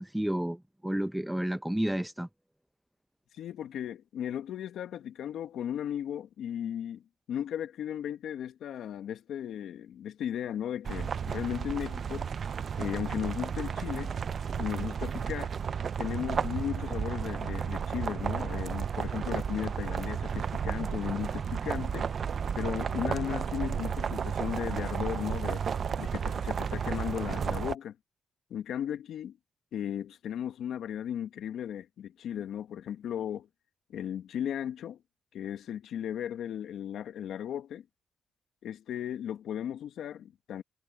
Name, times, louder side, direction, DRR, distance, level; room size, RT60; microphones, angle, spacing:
voice 1, 0.0-2.3, right 1 dB, 5° right, 0.8 m, -31 dB
voice 2, 3.4-7.0 7.3-12.3 12.8-14.2 14.6-15.5 16.0-22.1 22.6-25.7 26.0-28.0 28.5-29.4 29.7-33.5 33.9-35.0 35.3-37.8 38.6-40.6, left 9 dB, 75° left, 1.8 m, -36 dB
sound 1, 10.8-27.7, right 7 dB, 50° right, 0.6 m, -33 dB
cardioid pair, 90°, 0 cm